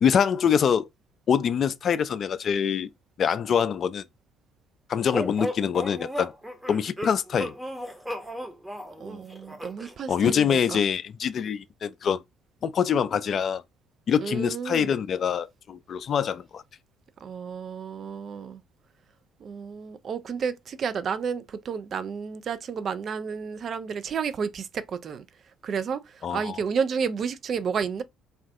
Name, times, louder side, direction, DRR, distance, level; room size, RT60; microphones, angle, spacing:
voice 1, 0.0-0.9 1.3-2.9 3.2-4.0 4.9-6.3 6.7-7.5 10.1-12.2 12.6-13.6 14.1-16.6 26.2-26.6, left 7 dB, 50° left, 0.3 m, -24 dB
sound 1, 5.1-9.9, equal, 10° right, 0.8 m, -35 dB
voice 2, 9.0-10.9 14.2-14.9 17.2-18.6 19.4-25.3 25.6-28.0, right 6 dB, 50° right, 0.3 m, -31 dB
2.4 x 2.4 x 3.4 m
hypercardioid pair, 50°, 0 cm